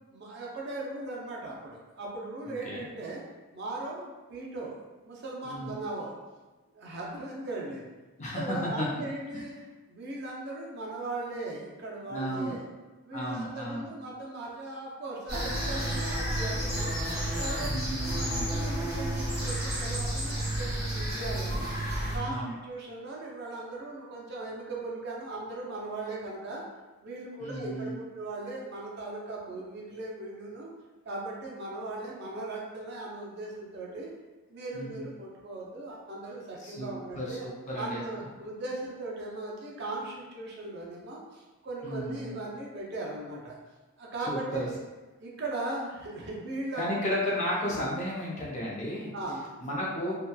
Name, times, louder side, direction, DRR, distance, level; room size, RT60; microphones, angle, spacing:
voice 1, 0.1-3.2 3.5-4.8 5.0-6.1 6.7-7.8 8.4-9.6 9.9-12.6 13.0-17.0 17.4-26.6 27.0-30.7 31.0-34.1 34.5-37.4 37.7-43.6 44.0-44.7 45.2-46.9 49.1-49.4, right 2 dB, 50° right, -3 dB, 0.5 m, -38 dB
voice 2, 2.5-2.8 5.4-5.7 8.2-9.0 12.1-12.5 13.1-13.9 17.6-18.5 22.3-22.6 27.4-28.0 34.7-35.1 36.6-38.0 41.8-42.4 44.3-44.7 46.8-49.1 49.6-50.2, equal, 30° left, -5 dB, 0.5 m, -33 dB
sound 1, 15.3-22.2, right 1 dB, 5° right, 0.9 m, -31 dB
2.7 x 2.2 x 2.2 m, 1.2 s
head